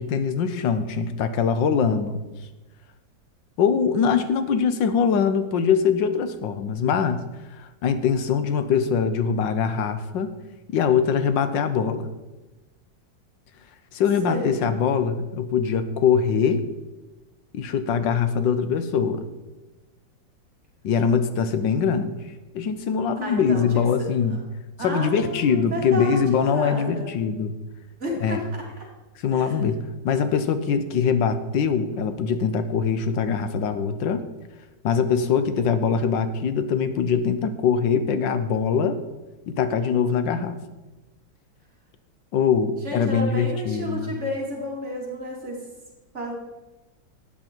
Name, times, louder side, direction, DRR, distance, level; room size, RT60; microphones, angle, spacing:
voice 1, 0.0-2.2 3.6-7.2 7.5-10.3 10.7-12.1 13.9-16.6 17.5-19.2 20.8-22.2 22.5-24.4 24.8-27.5 28.2-28.4 29.2-34.2 34.8-39.0 39.5-40.6 42.3-44.1, left 6 dB, 90° left, 10 dB, 1.6 m, -23 dB
voice 2, 8.3-8.8 14.3-14.7 23.2-24.1 24.8-27.1 28.0-28.5 29.3-29.7 35.1-35.6 42.8-45.6 46.1-46.3, equal, 40° right, -3 dB, 3.0 m, -32 dB
13.0 x 9.0 x 4.6 m, 1.1 s
omnidirectional pair, 1.9 m